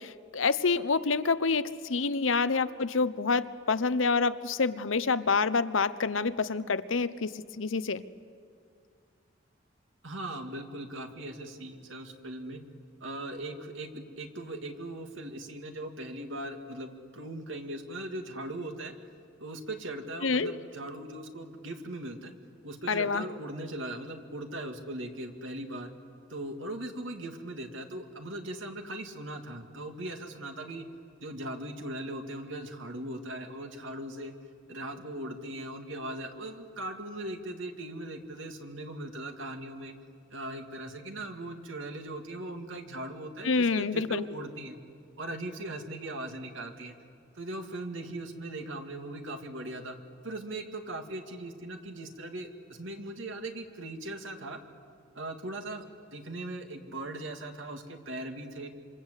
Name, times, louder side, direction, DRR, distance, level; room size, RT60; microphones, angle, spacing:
voice 1, 0.0-8.0 20.2-20.5 22.9-23.2 43.4-44.2, left 4 dB, 90° left, 14 dB, 0.8 m, -27 dB
voice 2, 10.0-12.6 13.0-18.9 19.4-22.3 22.6-25.9 26.3-30.9 31.2-34.3 34.7-39.9 40.3-44.8 45.2-46.9 47.3-50.0 50.2-54.6 55.1-58.7, right 1 dB, 80° right, 5 dB, 2.3 m, -39 dB
27.0 x 25.5 x 8.3 m, 2.3 s
head